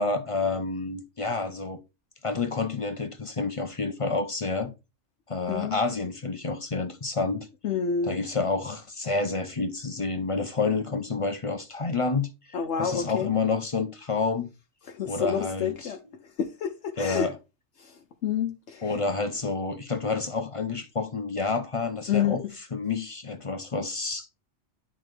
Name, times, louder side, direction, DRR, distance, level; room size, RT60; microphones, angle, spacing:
voice 1, 0.0-1.8 2.2-4.7 5.3-7.5 8.0-12.3 12.8-14.5 15.1-15.9 17.0-17.4 18.8-22.4 22.7-24.3, left 3 dB, 35° left, 0.6 m, -29 dB
voice 2, 5.5-5.8 7.6-8.2 12.5-13.3 14.9-16.0 16.4-17.3 17.8-17.9 18.2-18.9 22.1-22.5, left 7 dB, 75° left, 1.0 m, -28 dB
10.5 x 3.8 x 3.2 m
omnidirectional pair, 1.2 m